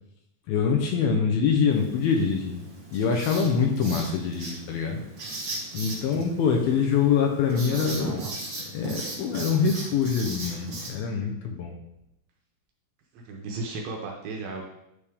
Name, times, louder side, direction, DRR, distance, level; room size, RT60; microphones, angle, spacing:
voice 1, 0.5-2.6 2.9-5.0 5.7-8.2 8.7-11.7, left 6 dB, 80° left, 2 dB, 2.3 m, -24 dB
Writing, 1.7-10.9, right 2 dB, 45° right, 2.3 m, -38 dB
voice 2, 6.4-6.8 7.5-8.3 13.1-14.6, right 3 dB, 75° right, 0 dB, 2.2 m, -36 dB
9.5 x 3.5 x 3.4 m, 0.84 s
omnidirectional pair, 4.6 m